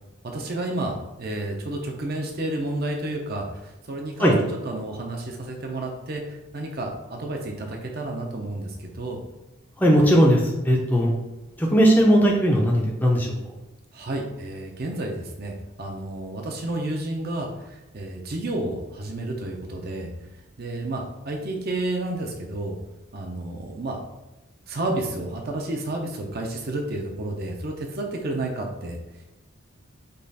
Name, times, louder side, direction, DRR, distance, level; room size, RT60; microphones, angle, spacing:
voice 1, 0.2-4.3 4.6-9.2 13.9-20.1 20.6-22.8 23.1-24.0 24.7-29.0, right 2 dB, 45° right, 1 dB, 0.6 m, -31 dB
voice 2, 9.8-11.1 11.6-13.3, equal, 10° left, -2 dB, 0.5 m, -18 dB
5.3 x 2.4 x 4.0 m, 1.0 s
head